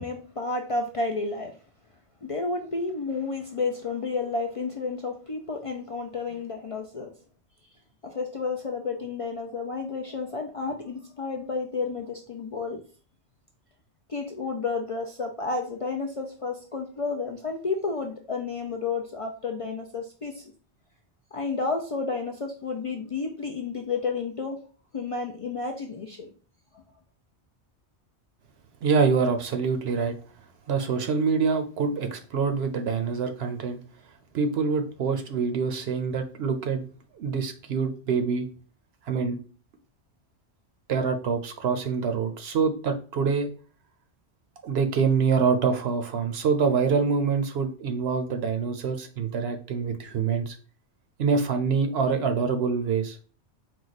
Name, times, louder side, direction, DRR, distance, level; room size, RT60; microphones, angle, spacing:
voice 1, 0.0-1.5 2.2-7.1 8.0-12.8 14.1-20.5 21.3-24.6 24.9-26.3 26.7-26.8, left 4 dB, 55° left, 2 dB, 0.3 m, -31 dB
voice 2, 28.8-30.1 30.7-33.8 34.3-36.9 37.2-38.5 39.1-39.4 40.9-43.5 44.6-50.6 51.2-53.3, right 5 dB, 70° right, 7 dB, 0.8 m, -25 dB
4.6 x 2.2 x 3.9 m, 0.39 s
omnidirectional pair, 1.1 m